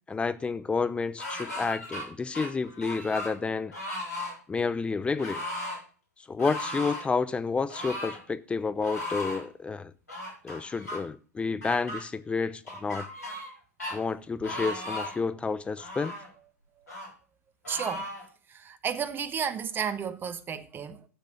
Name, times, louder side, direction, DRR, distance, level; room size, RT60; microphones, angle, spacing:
voice 1, 0.1-3.7 4.5-5.4 6.3-9.9 10.4-13.0 13.9-16.1, left 4 dB, 15° left, 0.7 m, -30 dB
sound 1, 1.2-2.0 2.3-3.3 3.7-4.3 5.2-5.8 6.4-7.1 7.7-8.2 8.8-9.4 10.1-11.0 11.6-12.0 12.7-13.5 13.8-13.9 14.4-15.2 15.8-16.3 16.9-17.1 17.6-18.2, left 1 dB, 75° left, 7.3 m, -36 dB
voice 2, 17.7-18.1 18.5-21.1, right 7 dB, 25° right, 1.3 m, -33 dB
11.5 x 7.5 x 6.1 m
figure-of-eight pair, 95°, 9 cm